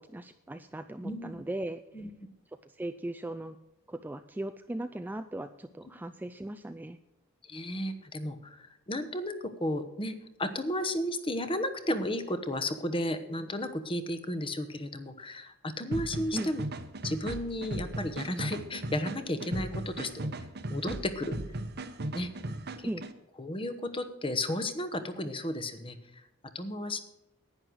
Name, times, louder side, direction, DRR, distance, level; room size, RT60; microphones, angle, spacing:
voice 1, 0.0-2.1 2.6-3.6 3.9-7.0 16.3-16.5 22.8-23.1, right 1 dB, 10° right, 9 dB, 0.3 m, -38 dB
voice 2, 1.0-1.4 1.9-2.1 7.5-16.6 17.0-20.3 20.7-21.4 22.1-22.3 22.8-22.9 23.4-26.0 26.5-27.0, left 1 dB, 25° left, 10 dB, 1.0 m, -33 dB
sound 1, 15.9-23.1, right 1 dB, 50° right, 0.9 m, -37 dB
11.0 x 9.5 x 6.2 m, 0.93 s
head